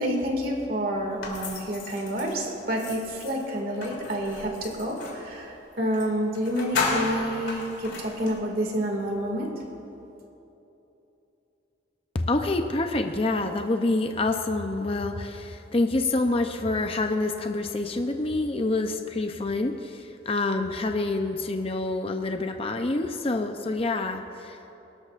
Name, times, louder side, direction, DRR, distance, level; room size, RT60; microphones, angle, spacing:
voice 1, 0.0-9.5, equal, 50° right, 1 dB, 2.2 m, -29 dB
sound 1, 1.2-5.2 5.9-6.1 6.3-8.4, left 3 dB, 85° left, 3.2 m, -33 dB
voice 2, 12.2-24.8, left 2 dB, 30° left, 5 dB, 0.6 m, -27 dB
23.5 x 12.5 x 2.5 m, 3.0 s
head